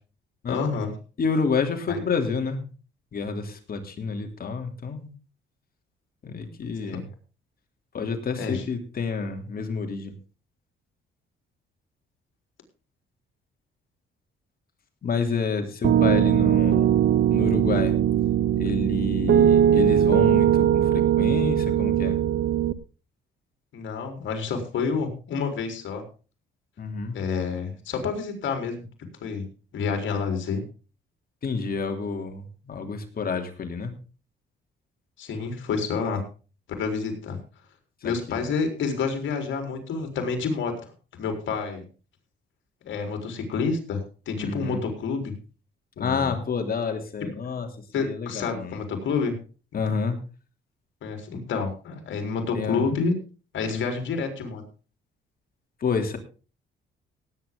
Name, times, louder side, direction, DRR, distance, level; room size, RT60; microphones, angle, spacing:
voice 1, 0.5-0.9 1.9-2.0 6.8-7.0 8.4-8.6 23.7-26.0 27.1-28.9 29.2-29.5 29.7-30.6 35.2-36.2 36.8-37.4 38.0-40.7 41.2-41.9 42.8-45.3 46.0-46.3 47.9-49.4 51.0-53.1 53.5-54.6, left 5 dB, 70° left, 4 dB, 4.3 m, -28 dB
voice 2, 1.2-2.7 3.1-5.1 6.2-7.1 7.9-10.1 15.0-17.0 17.3-18.0 18.6-22.2 26.8-27.2 31.4-33.9 38.0-38.4 44.4-44.8 46.0-47.7 47.9-48.8 49.7-50.2 52.5-52.8 55.8-56.2, left 5 dB, 50° left, 4 dB, 3.2 m, -29 dB
Piano, 15.8-22.7, right 10 dB, 60° right, 0.9 m, -20 dB
18.5 x 9.2 x 3.8 m, 0.35 s
cardioid pair, 90°, 20 cm